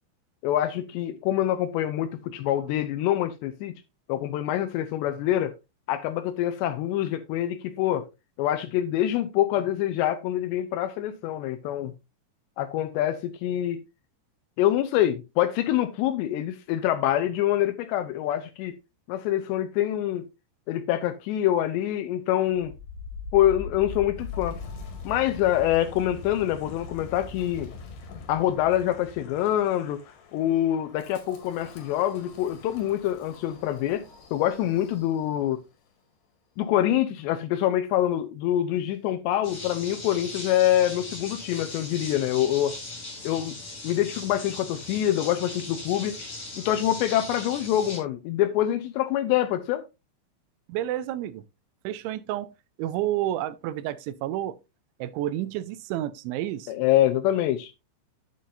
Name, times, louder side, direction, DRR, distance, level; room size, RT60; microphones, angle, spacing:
voice 1, 0.4-3.7 4.1-5.5 5.9-8.1 8.4-11.9 12.6-13.8 14.6-18.8 19.1-20.2 20.7-22.7 23.3-24.6 25.1-27.7 28.3-30.0 30.3-34.0 34.3-35.6 36.6-42.8 43.2-43.6 43.8-46.2 46.6-49.8 56.7-57.7, left 12 dB, 85° left, 2.6 m, -25 dB
Wind, 22.5-35.5, left 4 dB, 65° left, 3.8 m, -42 dB
sound 1, 39.4-48.0, left 2 dB, 30° left, 5.5 m, -39 dB
voice 2, 50.7-51.4 51.8-52.5 52.8-54.6 55.0-56.7, right 13 dB, 85° right, 3.0 m, -30 dB
9.3 x 8.6 x 2.6 m
omnidirectional pair, 5.4 m